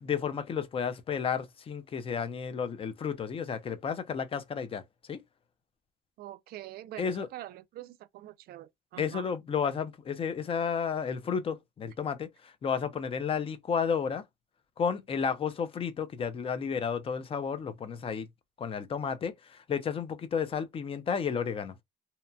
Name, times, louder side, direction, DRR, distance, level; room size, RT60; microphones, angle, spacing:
voice 1, 0.0-4.8 5.1-5.2 7.0-7.3 9.0-14.2 14.8-18.3 18.6-21.8, left 6 dB, 35° left, 0.5 m, -32 dB
voice 2, 6.2-9.2, right 14 dB, 65° right, 0.4 m, -44 dB
2.8 x 2.1 x 2.6 m
cardioid pair, 110°, 17 cm